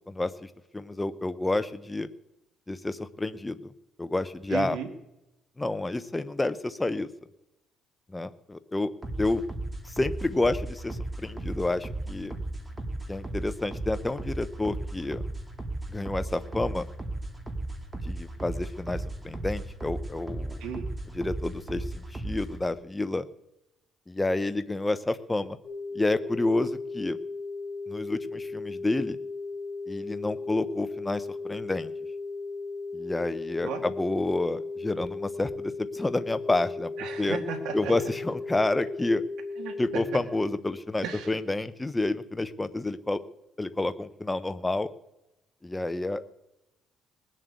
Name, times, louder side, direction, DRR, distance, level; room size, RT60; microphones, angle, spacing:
voice 1, 0.0-2.1 2.7-3.7 4.0-4.8 5.6-7.1 8.1-8.9 9.2-9.4 9.8-12.3 13.1-15.2 15.9-16.9 18.0-20.6 21.1-23.2 24.1-25.6 25.9-27.2 27.9-29.2 29.9-31.9 32.9-36.9 37.2-37.4 37.7-39.2 39.8-43.2 43.6-44.9 45.6-46.2, left 2 dB, 10° left, 11 dB, 0.7 m, -29 dB
voice 2, 4.5-4.9 20.6-20.9 33.6-33.8 37.0-37.9 39.6-40.0 41.0-41.3, right 7 dB, 80° right, 5 dB, 1.9 m, -35 dB
sound 1, 9.0-22.6, right 2 dB, 15° right, 2.0 m, -36 dB
sound 2, 25.6-40.0, left 3 dB, 35° right, 7.4 m, -36 dB
20.0 x 7.5 x 8.2 m, 0.92 s
cardioid pair, 110°, 0 cm